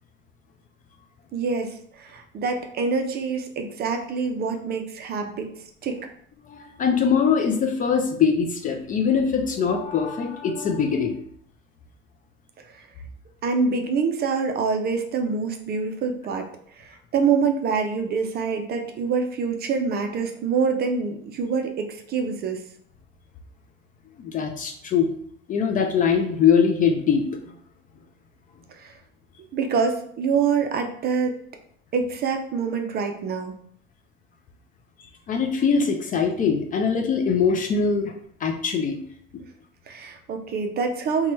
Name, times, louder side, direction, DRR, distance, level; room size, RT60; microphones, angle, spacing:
voice 1, 1.3-5.5 5.8-6.1 12.8-12.9 13.4-16.5 16.8-22.6 28.7-28.9 29.5-31.4 31.9-33.5 39.9-41.3, right 5 dB, 35° right, 5 dB, 0.5 m, -26 dB
voice 2, 6.5-11.2 24.2-25.1 25.5-27.5 35.3-38.1 38.4-39.0, left 6 dB, 30° left, 5 dB, 0.4 m, -22 dB
2.9 x 2.2 x 2.9 m, 0.63 s
hypercardioid pair, 90°, 29 cm